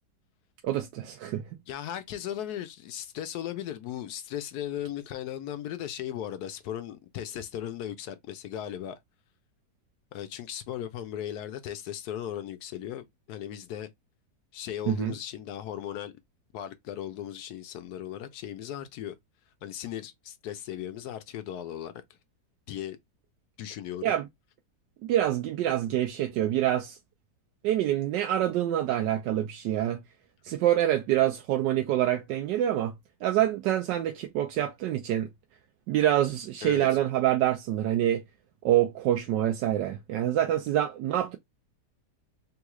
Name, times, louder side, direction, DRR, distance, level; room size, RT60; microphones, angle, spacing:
voice 1, 0.6-1.4 14.9-15.1 24.0-24.3 25.1-27.0 27.6-30.0 30.4-32.9 33.2-35.3 35.9-38.2 38.6-41.4, right 12 dB, 85° right, 1.2 m, -26 dB
voice 2, 1.7-9.0 10.1-13.9 14.5-16.1 16.5-19.1 19.6-21.9 22.7-23.0 23.6-24.2 36.6-36.9, left 11 dB, 75° left, 1.1 m, -37 dB
3.6 x 2.4 x 2.9 m
omnidirectional pair, 1.8 m